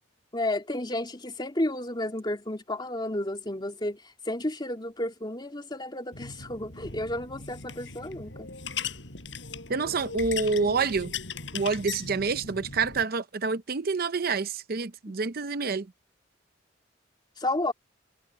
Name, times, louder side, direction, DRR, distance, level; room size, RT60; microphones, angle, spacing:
voice 1, 0.3-8.5 15.1-15.2 17.4-17.7, left 1 dB, 25° left, 2.7 m, -32 dB
sound 1, 6.1-13.0, left 5 dB, 75° left, 5.3 m, -38 dB
voice 2, 9.7-11.1 11.5-15.9, right 4 dB, 55° right, 0.7 m, -28 dB
head